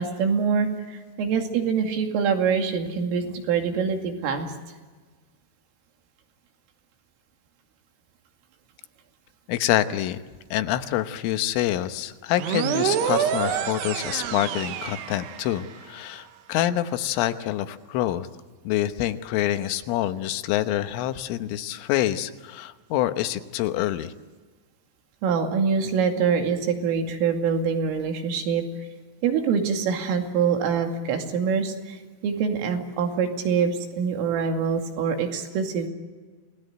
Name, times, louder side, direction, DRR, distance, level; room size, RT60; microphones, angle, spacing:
voice 1, 0.0-4.5 25.2-28.7 29.2-35.9, right 6 dB, 85° right, 4 dB, 5.0 m, -25 dB
voice 2, 9.5-10.2 10.5-18.3 18.6-24.1, left 13 dB, 80° left, 10 dB, 3.6 m, -26 dB
sound 1, 12.3-15.8, right 9 dB, 70° right, 3.1 m, -27 dB
28.5 x 19.5 x 9.3 m, 1.4 s
omnidirectional pair, 5.7 m